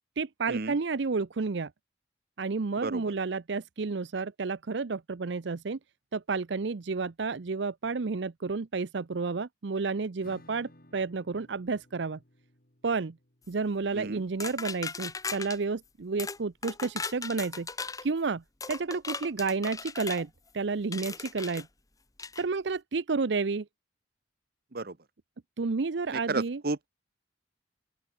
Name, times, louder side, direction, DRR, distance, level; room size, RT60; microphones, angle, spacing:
voice 1, 0.2-1.7 2.4-5.8 6.1-12.2 12.8-13.2 13.5-17.7 18.0-18.4 18.7-21.7 22.4-23.7 25.6-26.6, right 4 dB, 75° right, 0.6 m, -31 dB
Acoustic guitar / Strum, 10.2-15.7, left 1 dB, 50° left, 3.6 m, -60 dB
sound 1, 14.4-15.6 16.2-16.4 16.6-18.1 18.6-20.2 20.9-21.6 22.2-22.4, left 4 dB, 20° left, 1.2 m, -37 dB
voice 2, 26.1-26.9, right 3 dB, 55° right, 1.0 m, -33 dB
open air
head